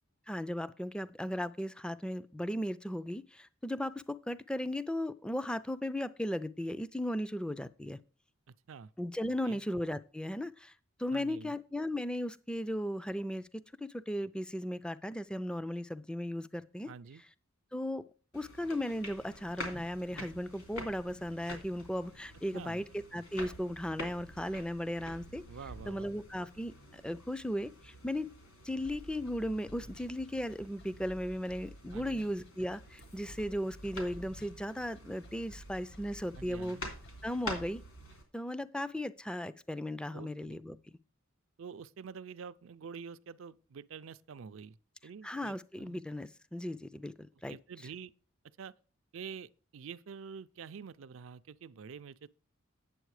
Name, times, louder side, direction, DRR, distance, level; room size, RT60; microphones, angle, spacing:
voice 1, 0.3-8.0 9.0-10.7 11.0-16.9 17.7-18.0 18.3-25.4 25.9-28.3 28.6-36.8 37.2-37.8 38.3-40.8 45.2-47.6, left 1 dB, 5° left, 0.3 m, -36 dB
voice 2, 8.5-8.9 9.4-9.6 11.1-11.6 16.9-17.2 22.5-22.8 25.5-26.1 31.9-32.3 36.4-36.9 40.1-40.5 41.6-44.8 45.0-46.0 47.5-48.1 48.6-48.7 49.1-52.3, right 6 dB, 65° right, 0.4 m, -47 dB
sound 1, 18.3-38.2, left 1 dB, 75° left, 3.1 m, -48 dB
sound 2, 28.8-37.7, right 1 dB, 55° left, 1.0 m, -53 dB
9.1 x 7.2 x 4.8 m
head